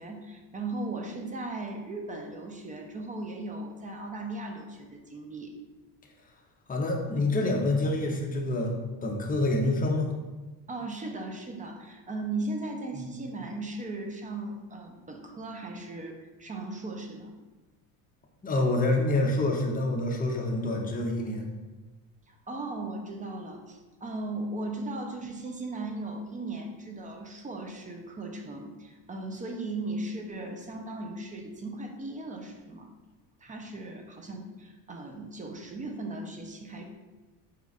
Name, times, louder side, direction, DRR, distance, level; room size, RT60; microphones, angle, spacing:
voice 1, 0.0-5.5 10.7-17.3 22.3-32.9 33.4-36.8, right 2 dB, 20° right, 3 dB, 0.4 m, -37 dB
voice 2, 6.7-8.8 9.0-10.1 12.9-13.1 18.4-21.5, left 2 dB, 20° left, 0 dB, 0.6 m, -27 dB
4.2 x 2.3 x 3.9 m, 1.2 s
cardioid pair, 110°, 45 cm